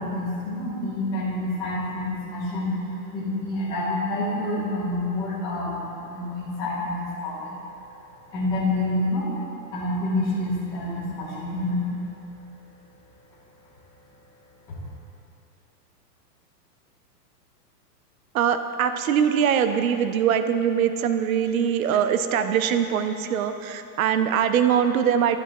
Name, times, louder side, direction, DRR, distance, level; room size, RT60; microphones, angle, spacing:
voice 1, 0.0-7.5 8.3-9.3 9.7-11.9 14.7-14.8, left 1 dB, 10° left, -10 dB, 0.9 m, -28 dB
voice 2, 18.3-25.4, right 8 dB, 55° right, 9 dB, 0.5 m, -22 dB
12.5 x 8.0 x 2.9 m, 2.9 s
supercardioid pair, 180°, 50 cm